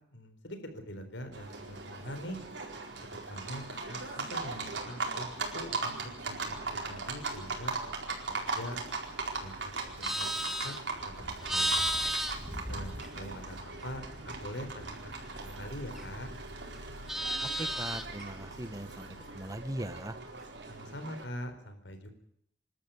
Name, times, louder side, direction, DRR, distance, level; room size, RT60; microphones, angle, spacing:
voice 1, 0.1-2.4 3.0-5.3 5.5-6.0 6.3-7.9 8.3-8.8 9.4-9.7 10.0-10.4 10.6-10.8 11.0-12.0 12.7-16.3 20.7-22.1, equal, 85° left, 8 dB, 4.2 m, -43 dB
Livestock farm animals working animals, 1.3-21.2, right 3 dB, 75° right, 4.5 m, -39 dB
Livestock farm animals working animals 2, 9.8-13.5 13.8-16.3 16.6-18.2, equal, ahead, 1.9 m, -35 dB
voice 2, 17.6-20.2, right 1 dB, 20° right, 12 dB, 1.1 m, -39 dB
26.5 x 12.5 x 9.4 m, 0.71 s
head